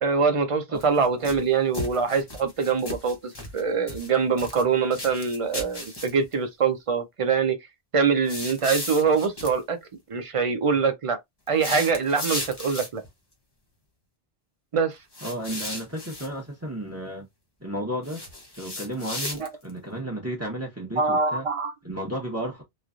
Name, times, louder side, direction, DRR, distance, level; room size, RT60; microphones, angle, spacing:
voice 1, 0.0-7.6 7.9-9.8 10.1-11.2 11.5-13.0 14.7-15.0 19.4-19.5 21.0-21.7, right 5 dB, 45° right, 0.4 m, -24 dB
sound 1, 0.7-1.4 1.7-3.6 3.9-4.6 4.9-6.3 8.3-9.6 11.5-13.1 15.1-16.3 18.0-19.7, left 1 dB, 25° left, 0.9 m, -35 dB
voice 2, 15.2-17.2 17.6-18.2 18.5-21.4 21.8-22.6, right 1 dB, 15° right, 0.9 m, -33 dB
3.1 x 2.3 x 2.5 m
omnidirectional pair, 1.1 m